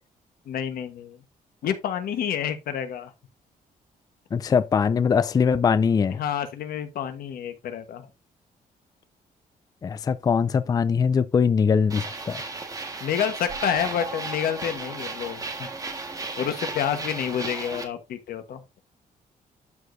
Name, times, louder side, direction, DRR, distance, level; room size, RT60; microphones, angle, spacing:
voice 1, 0.5-1.2 1.6-3.1 6.2-8.1 13.0-15.7 16.4-18.6, left 9 dB, 85° left, 1.3 m, -29 dB
voice 2, 4.3-6.2 9.8-12.4, left 6 dB, 25° left, 0.4 m, -22 dB
sound 1, 11.9-17.8, right 3 dB, 25° right, 1.6 m, -34 dB
12.0 x 5.0 x 2.7 m
wide cardioid pair, 160°, 15 cm